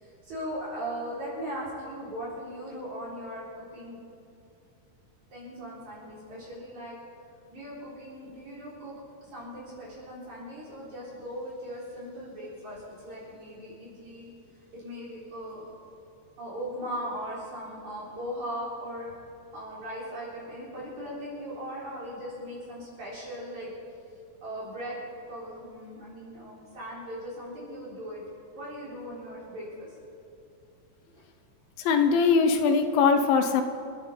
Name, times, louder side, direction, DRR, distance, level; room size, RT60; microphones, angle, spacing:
voice 1, 0.0-4.0 5.3-7.0 7.5-8.9 9.2-14.3 14.7-15.6 16.4-19.2 19.5-23.7 24.4-25.0 25.3-28.2 28.5-29.9 31.1-31.2, equal, 45° right, -7 dB, 4.9 m, -38 dB
voice 2, 31.9-33.6, left 5 dB, 75° left, 7 dB, 2.2 m, -21 dB
29.5 x 9.8 x 4.3 m, 2.6 s
omnidirectional pair, 4.7 m